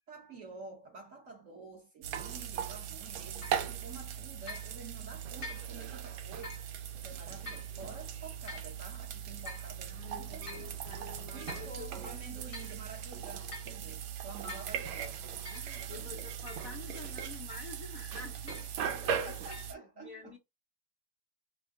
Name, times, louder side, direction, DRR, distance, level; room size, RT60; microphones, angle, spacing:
voice 1, 0.1-6.6 6.9-10.8 11.3-15.2 15.9-16.3 18.8-20.4, right 4 dB, 50° right, 1.1 m, -49 dB
sound 1, 2.0-19.7, right 8 dB, 80° right, 1.4 m, -39 dB
sound 2, 3.4-3.7 4.5-4.7 5.4-5.7 6.4-6.7 7.5-7.7 8.5-8.7 9.5-9.7 10.5-10.7 11.5-11.7 12.3-12.8 13.5-13.8 14.5-14.7 15.4-15.7 16.5-16.7 17.5-17.8 18.5-18.8 19.5-19.7, left 2 dB, 40° left, 0.8 m, -46 dB
voice 2, 9.9-12.1 12.4-12.7 15.5-18.7 19.3-19.4 19.7-20.4, left 5 dB, 70° left, 0.8 m, -49 dB
3.5 x 2.2 x 3.5 m
omnidirectional pair, 2.2 m